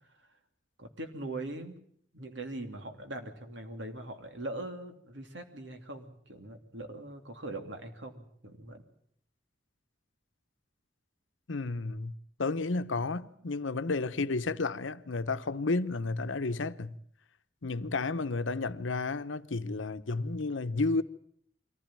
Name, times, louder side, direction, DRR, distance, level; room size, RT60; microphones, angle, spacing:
voice 1, 0.8-1.7 2.1-8.8, right 2 dB, 75° right, 2.8 m, -41 dB
voice 2, 11.5-12.1 12.4-16.9 17.6-21.0, left 3 dB, 90° left, 0.9 m, -32 dB
23.5 x 15.5 x 8.9 m
head